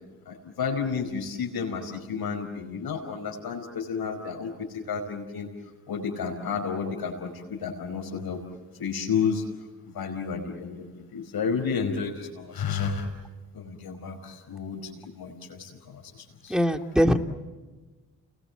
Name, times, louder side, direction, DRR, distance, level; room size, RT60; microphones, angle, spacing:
voice 1, 0.3-5.5 5.9-8.4 8.8-9.4 9.9-13.1 13.5-16.0 16.4-16.6, left 6 dB, 75° left, 2 dB, 5.1 m, -31 dB
voice 2, 16.5-17.2, equal, ahead, 5 dB, 2.7 m, -21 dB
30.0 x 20.5 x 8.3 m, 1.3 s
supercardioid pair, 45°, 37 cm